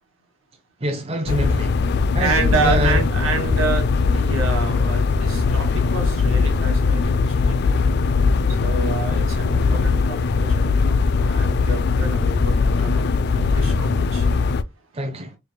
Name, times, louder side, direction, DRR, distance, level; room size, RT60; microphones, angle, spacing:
voice 1, 0.8-1.8 2.1-3.0 14.9-15.4, right 1 dB, 30° right, 0.6 m, -26 dB
sound 1, 1.3-14.6, left 4 dB, 55° left, 0.3 m, -20 dB
voice 2, 2.2-7.6 8.5-14.3, right 4 dB, 80° right, 1.5 m, -28 dB
4.5 x 3.4 x 2.2 m
head